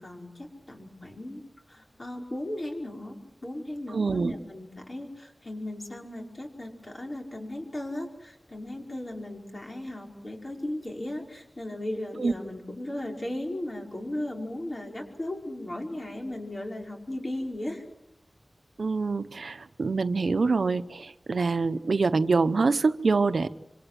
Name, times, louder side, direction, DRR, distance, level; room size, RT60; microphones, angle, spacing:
voice 1, 0.0-17.8, left 1 dB, 40° left, 1 dB, 5.2 m, -36 dB
voice 2, 3.9-4.3 12.2-12.3 18.8-23.5, right 4 dB, 85° right, 12 dB, 0.9 m, -25 dB
26.0 x 25.5 x 7.7 m, 0.82 s
wide cardioid pair, 75°, 0 cm